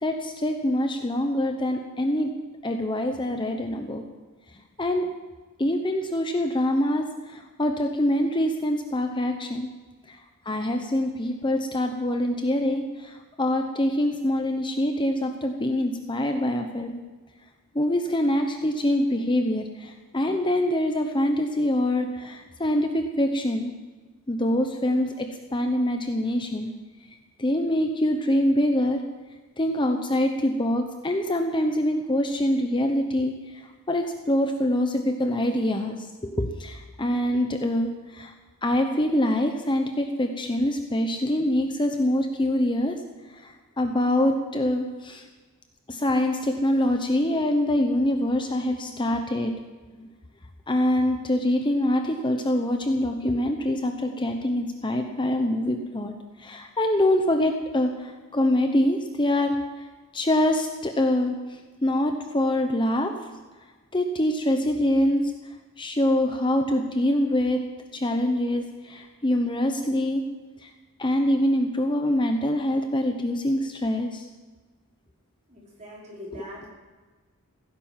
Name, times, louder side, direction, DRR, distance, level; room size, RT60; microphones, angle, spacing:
voice 1, 0.0-2.3 2.6-4.0 4.8-5.1 5.6-9.7 10.1-10.2 10.4-17.0 17.7-23.7 24.3-26.7 27.4-29.0 29.6-38.3 38.6-43.0 43.3-45.2 45.9-49.5 49.9-50.1 50.7-56.1 56.4-59.5 60.1-63.1 63.9-65.3 65.8-67.6 67.9-70.2 70.6-70.7 71.0-74.3 76.3-76.5, left 1 dB, 20° left, 5 dB, 0.9 m, -25 dB
voice 2, 75.5-76.7, left 1 dB, 30° right, -4 dB, 5.0 m, -42 dB
16.5 x 10.5 x 7.4 m, 1.3 s
head